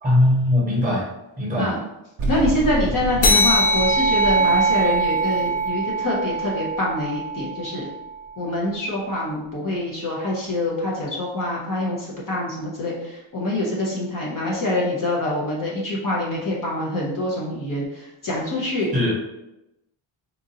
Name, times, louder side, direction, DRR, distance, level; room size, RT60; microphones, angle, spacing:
voice 1, 0.0-1.1 1.4-1.7 18.9-19.1, left 1 dB, 15° right, -5 dB, 1.1 m, -19 dB
sound 1, 2.2-7.4, right 2 dB, 45° right, 0.8 m, -31 dB
voice 2, 2.3-7.9 8.4-18.9, left 1 dB, 40° left, -4 dB, 0.8 m, -25 dB
sound 2, 3.2-8.1, right 1 dB, 85° left, 0.9 m, -21 dB
4.3 x 2.5 x 2.7 m, 0.88 s
wide cardioid pair, 170°, 50 cm